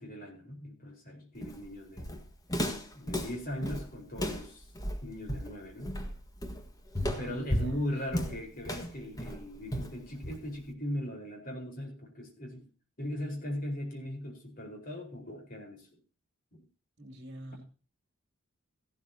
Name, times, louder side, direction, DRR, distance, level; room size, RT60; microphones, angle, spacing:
voice 1, 0.0-2.1 2.9-4.7 5.0-5.9 7.2-12.7 13.0-16.0 16.5-16.6, left 1 dB, 40° left, 2 dB, 4.7 m, -39 dB
Walk footsteps, 1.4-10.7, equal, 15° left, 1.7 m, -35 dB
voice 2, 6.9-7.8 17.0-17.6, right 1 dB, 50° right, 7 dB, 2.9 m, -45 dB
16.0 x 12.0 x 2.9 m, 0.37 s
head